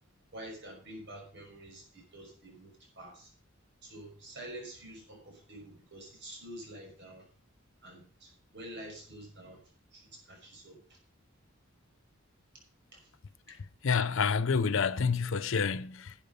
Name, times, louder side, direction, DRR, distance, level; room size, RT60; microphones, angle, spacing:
voice 1, 0.3-3.3 3.8-7.3 7.8-9.6 9.9-10.8 12.9-13.0, right 1 dB, 60° right, 5.9 m, -47 dB
voice 2, 13.8-16.1, left 5 dB, 70° left, 0.6 m, -28 dB
12.0 x 9.0 x 5.4 m
head